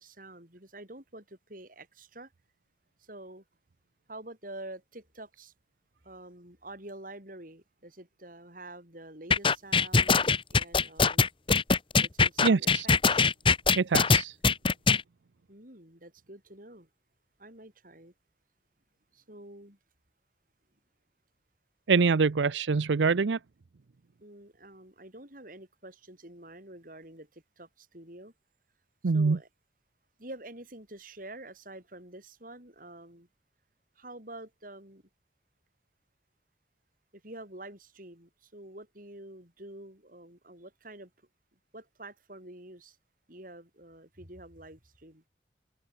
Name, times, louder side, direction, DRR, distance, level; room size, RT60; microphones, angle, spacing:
voice 1, 0.0-2.3 3.0-3.4 4.1-5.5 6.0-11.2 12.0-13.3 15.5-16.9 17.4-18.1 19.1-19.8 24.2-28.3 29.0-29.5 30.2-33.3 34.0-35.0 37.1-41.1 41.7-43.0 43.3-45.2, right 1 dB, 50° right, 7.4 m, -47 dB
sound 1, 9.3-15.0, left 4 dB, 30° left, 1.2 m, -22 dB
voice 2, 12.4-12.9 13.8-14.3 21.9-23.4 29.0-29.4, right 4 dB, 85° right, 0.6 m, -24 dB
head